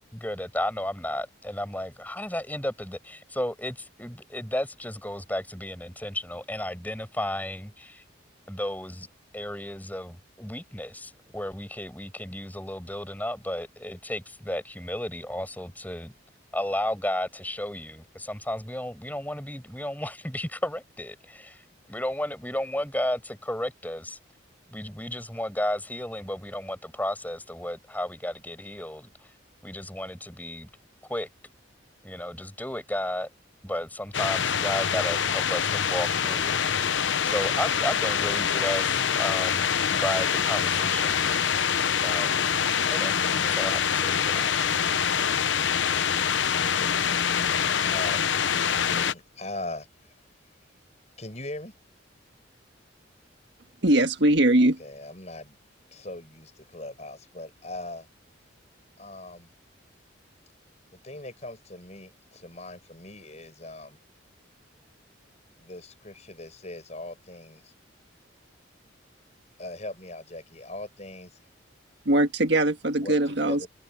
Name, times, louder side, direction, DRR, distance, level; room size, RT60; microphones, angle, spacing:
voice 1, 0.1-8.0 8.5-9.1 9.3-16.1 16.5-21.6 21.9-24.2 24.7-29.3 29.6-30.7 31.1-31.3 32.0-33.3 33.6-37.0 37.2-39.7 40.0-41.3 42.0-42.6 42.9-43.2 43.4-44.5, left 1 dB, 10° left, 6.9 m, -33 dB
sound 1, 34.1-49.1, left 7 dB, 70° left, 0.8 m, -25 dB
voice 2, 47.8-48.3 48.9-50.1 51.2-51.7 54.6-55.6 55.9-58.1 59.0-59.5 60.9-64.0 65.6-67.7 69.6-71.4 73.0-73.2 73.4-73.7, left 2 dB, 35° left, 7.1 m, -40 dB
voice 3, 53.8-54.8 72.0-73.7, right 1 dB, 60° right, 1.7 m, -21 dB
open air
head